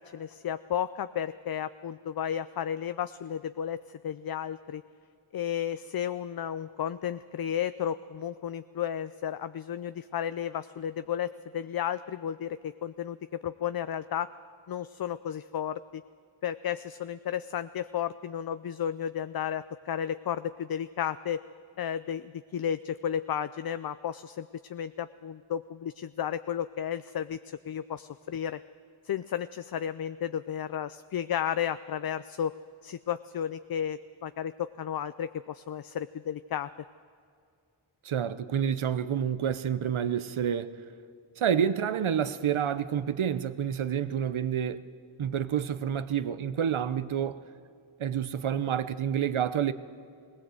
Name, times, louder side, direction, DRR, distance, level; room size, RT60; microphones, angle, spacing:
voice 1, 0.0-4.8 5.3-13.2 13.4-14.3 14.7-16.0 16.4-21.4 21.8-28.6 29.1-32.5 32.8-36.7, left 9 dB, 50° left, 0.5 m, -33 dB
voice 2, 38.0-40.8 41.4-44.8 45.2-47.4 48.0-49.7, right 8 dB, 75° right, 0.8 m, -28 dB
19.5 x 18.0 x 7.7 m
cardioid pair, 50°, 49 cm